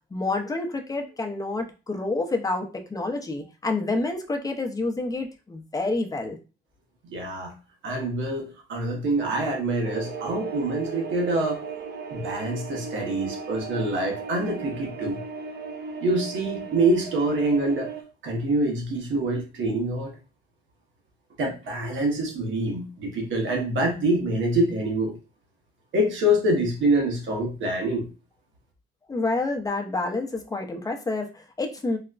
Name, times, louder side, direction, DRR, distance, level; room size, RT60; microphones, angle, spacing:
voice 1, 0.1-6.4 29.1-32.0, left 2 dB, 20° left, 4 dB, 0.6 m, -28 dB
voice 2, 7.1-7.5 7.8-11.6 12.1-15.2 16.0-17.9 18.2-20.1 21.4-25.2 25.9-28.1, right 1 dB, 75° right, 2 dB, 1.0 m, -25 dB
sound 1, 9.8-18.0, right 4 dB, 55° right, 0.7 m, -36 dB
4.0 x 2.1 x 2.3 m, 0.32 s
cardioid pair, 90°, 20 cm